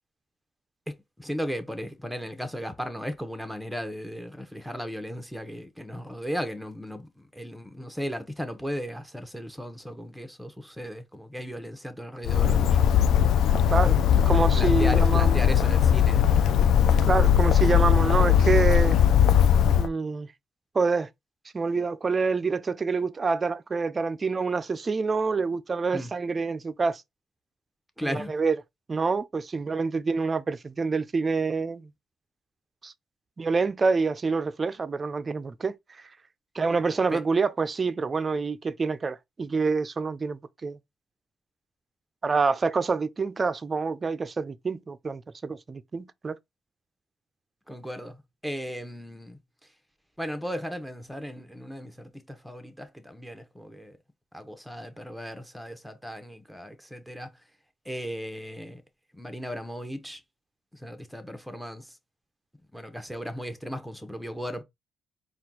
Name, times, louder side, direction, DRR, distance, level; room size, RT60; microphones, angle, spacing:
voice 1, 1.2-12.8 14.3-16.7 25.9-26.1 28.0-28.3 37.1-37.2 47.7-49.4 50.2-54.0 54.3-57.3 57.8-58.8 59.1-60.2 60.7-62.0 62.7-64.6, equal, ahead, 1.0 m, -36 dB
Bird, 12.2-19.9, left 9 dB, 75° left, 0.4 m, -20 dB
voice 2, 13.7-15.5 17.0-19.0 19.8-20.3 20.7-21.1 21.5-27.0 28.0-28.6 28.9-31.9 32.8-32.9 33.4-36.0 36.5-40.8 42.2-46.4, right 4 dB, 35° right, 0.4 m, -27 dB
4.3 x 2.3 x 3.8 m
cardioid pair, 90°, 0 cm